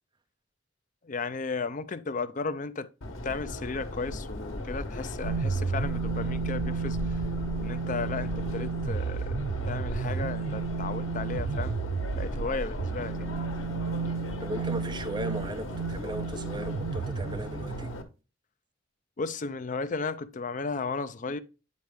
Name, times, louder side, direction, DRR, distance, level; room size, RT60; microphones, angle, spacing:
voice 1, 1.0-2.9 3.2-7.2 7.6-11.8 12.1-13.3 19.2-21.4, left 4 dB, 40° left, 0.5 m, -34 dB
Subway metro underground, 3.0-18.0, left 1 dB, 90° left, 1.1 m, -37 dB
sound 1, 5.2-18.1, right 5 dB, 90° right, 0.4 m, -33 dB
voice 2, 14.4-18.0, right 1 dB, 25° right, 0.7 m, -37 dB
9.5 x 3.8 x 3.4 m
head